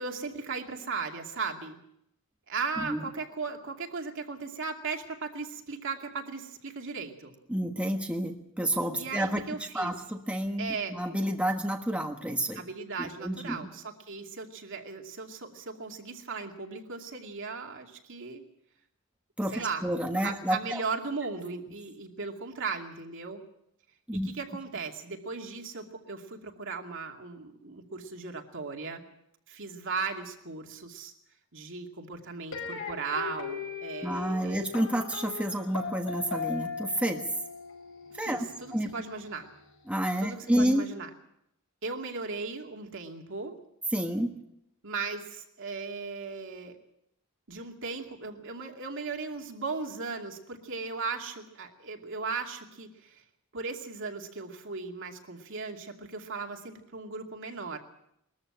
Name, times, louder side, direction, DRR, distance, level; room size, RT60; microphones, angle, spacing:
voice 1, 0.0-1.8 2.5-7.3 8.9-9.9 10.6-11.0 12.5-18.4 19.5-19.9 20.2-23.4 24.2-29.0 29.5-31.1 31.5-34.6 38.2-39.5 40.2-41.1 41.8-43.6 44.8-46.8 47.5-53.2 53.5-57.8, right 4 dB, 60° right, 3 dB, 2.6 m, -37 dB
voice 2, 7.5-9.4 9.7-12.6 13.0-13.6 19.4-20.8 24.1-24.3 34.0-37.2 38.2-38.9 39.9-40.8 43.9-44.3, right 1 dB, 5° right, 3 dB, 1.4 m, -29 dB
sound 1, 32.5-39.6, left 5 dB, 65° left, 5.7 m, -39 dB
21.5 x 14.0 x 8.9 m, 0.79 s
head